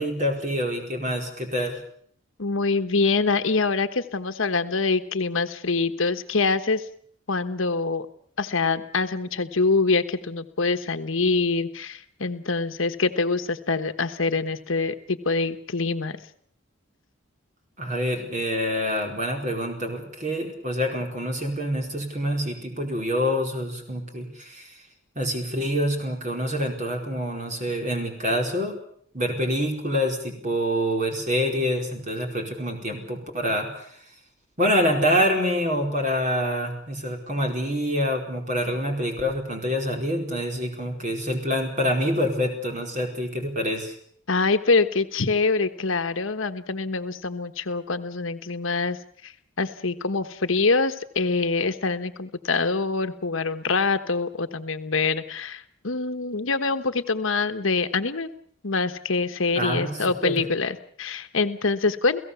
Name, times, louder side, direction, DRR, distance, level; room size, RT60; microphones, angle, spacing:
voice 1, 0.0-1.8 17.8-24.7 25.1-28.7 29.1-33.9 34.6-43.9 59.5-60.4, equal, 35° right, 2 dB, 4.7 m, -26 dB
voice 2, 2.4-6.8 7.3-8.1 8.4-16.2 44.3-49.0 49.2-49.3 49.6-58.3 58.6-62.2, left 4 dB, 75° left, 9 dB, 1.2 m, -25 dB
30.0 x 17.0 x 7.0 m, 0.64 s
head